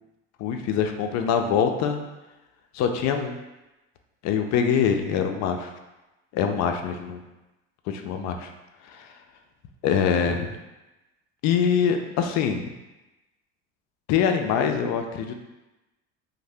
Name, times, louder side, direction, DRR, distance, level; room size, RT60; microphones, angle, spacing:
voice 1, 0.4-2.0 2.7-3.4 4.2-5.7 6.3-7.2 7.9-8.5 8.9-9.1 9.8-10.6 11.4-12.7 14.1-15.3, left 7 dB, 55° left, 5 dB, 0.4 m, -24 dB
2.6 x 2.1 x 3.3 m, 1.0 s
supercardioid pair, 90°, 33 cm